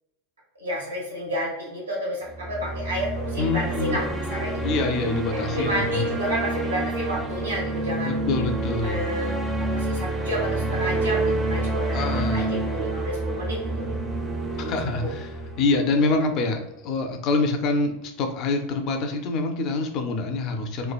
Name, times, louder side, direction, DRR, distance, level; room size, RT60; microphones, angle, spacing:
voice 1, 0.6-4.8 5.3-8.2 8.8-14.0 14.6-14.7 15.0-15.1, equal, 90° right, -4 dB, 1.0 m, -31 dB
sound 1, 2.3-16.5, right 2 dB, 15° right, 0.6 m, -28 dB
voice 2, 3.4-4.0 4.6-6.0 8.0-9.0 11.9-12.5 14.6-15.3 15.6-20.9, left 3 dB, 50° left, 5 dB, 0.5 m, -26 dB
3.1 x 2.2 x 2.3 m, 0.89 s
hypercardioid pair, 90°, 0 cm